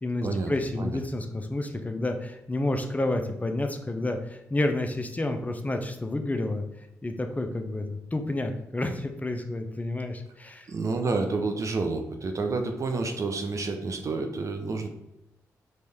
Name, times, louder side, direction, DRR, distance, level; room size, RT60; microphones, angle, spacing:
voice 1, 0.0-6.6 7.0-10.7, left 2 dB, 25° left, 6 dB, 0.6 m, -30 dB
voice 2, 10.7-14.9, right 3 dB, 50° right, 5 dB, 0.7 m, -29 dB
4.4 x 3.1 x 3.5 m, 0.84 s
supercardioid pair, 45°, 7 cm